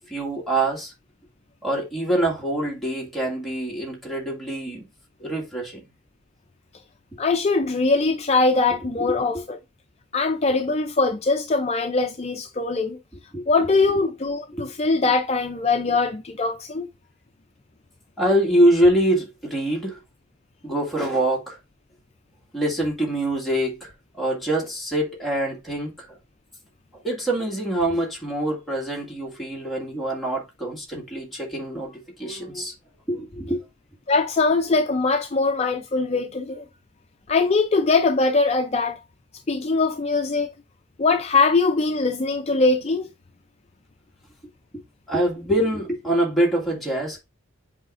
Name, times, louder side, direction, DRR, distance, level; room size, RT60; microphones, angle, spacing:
voice 1, 0.1-0.9 1.6-4.9 5.2-5.8 9.1-9.4 13.3-13.5 14.5-14.7 18.2-20.0 20.6-21.6 22.5-23.9 24.2-26.1 27.0-32.7 33.1-33.6 44.7-44.8 45.1-47.2, right 1 dB, ahead, 2.0 m, -24 dB
voice 2, 7.2-9.6 10.1-13.0 13.5-16.9 34.1-36.6 37.3-39.0 39.5-40.5 41.0-43.1, left 3 dB, 30° left, 0.4 m, -22 dB
7.9 x 4.8 x 2.6 m
head